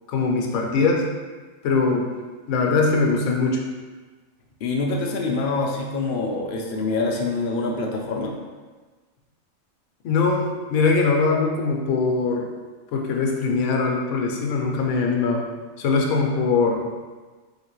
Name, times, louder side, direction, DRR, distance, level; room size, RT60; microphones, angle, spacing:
voice 1, 0.1-1.1 1.6-2.1 2.5-3.6 10.0-12.5 12.9-15.5 15.8-16.8, left 4 dB, 80° left, 1 dB, 1.0 m, -21 dB
voice 2, 4.6-8.3, left 3 dB, 60° left, 0 dB, 0.5 m, -25 dB
3.8 x 2.8 x 3.0 m, 1.3 s
omnidirectional pair, 1.4 m